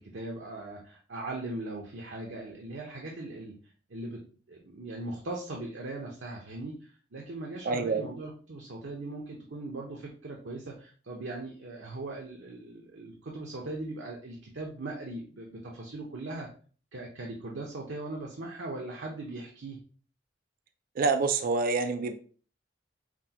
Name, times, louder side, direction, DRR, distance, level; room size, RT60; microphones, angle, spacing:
voice 1, 0.0-3.5 3.9-4.2 4.5-16.5 16.9-19.8, right 2 dB, 70° right, -1 dB, 0.7 m, -39 dB
voice 2, 7.6-8.1 21.0-22.1, right 4 dB, 50° right, 8 dB, 0.4 m, -27 dB
5.9 x 2.2 x 2.8 m, 0.41 s
head